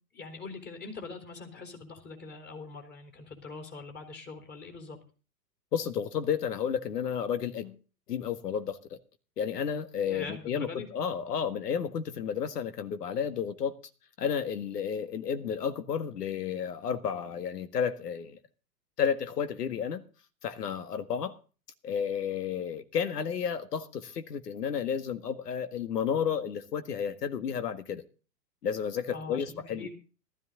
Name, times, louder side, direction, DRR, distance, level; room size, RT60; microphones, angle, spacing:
voice 1, 0.1-5.0 10.1-10.9 29.1-29.5 29.7-29.9, left 4 dB, 20° left, 3.5 m, -42 dB
voice 2, 5.7-7.8 8.1-9.0 9.4-13.8 14.2-18.4 19.0-20.0 20.4-21.4 21.8-28.0 28.6-29.9, left 7 dB, 70° left, 1.8 m, -32 dB
14.5 x 13.0 x 3.8 m
hypercardioid pair, 115°, 50 cm